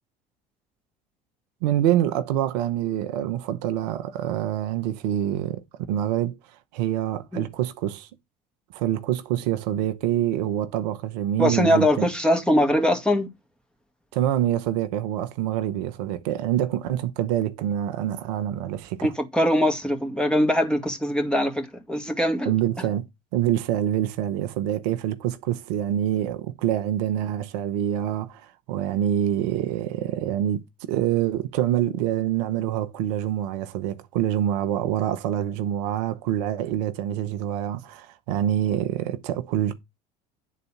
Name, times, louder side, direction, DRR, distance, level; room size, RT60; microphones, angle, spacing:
voice 1, 1.6-8.1 8.7-12.1 14.1-19.1 22.4-23.0 23.3-39.8, right 11 dB, 75° right, 0.9 m, -26 dB
voice 2, 11.4-13.3 19.0-22.5, equal, 5° left, 1.9 m, -22 dB
9.7 x 4.1 x 5.7 m
hypercardioid pair, 70°, 21 cm